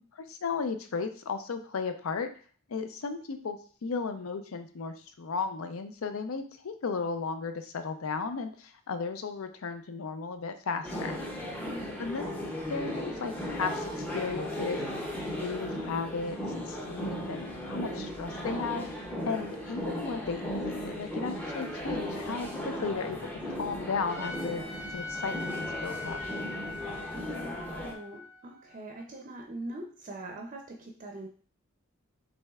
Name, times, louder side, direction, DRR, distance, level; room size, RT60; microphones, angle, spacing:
voice 1, 0.1-2.3 2.7-11.2 12.0-12.2 12.7-14.8 15.3-16.4 16.7-18.9 19.2-24.6 24.9-26.2, left 4 dB, 70° left, 8 dB, 0.5 m, -35 dB
sound 1, 10.8-27.9, equal, 10° left, 0.6 m, -36 dB
voice 2, 11.7-12.2 27.1-31.3, right 2 dB, 35° right, 1 dB, 0.5 m, -43 dB
Trumpet, 24.1-29.2, left 2 dB, 55° left, 1.7 m, -41 dB
6.1 x 3.2 x 2.3 m, 0.43 s
head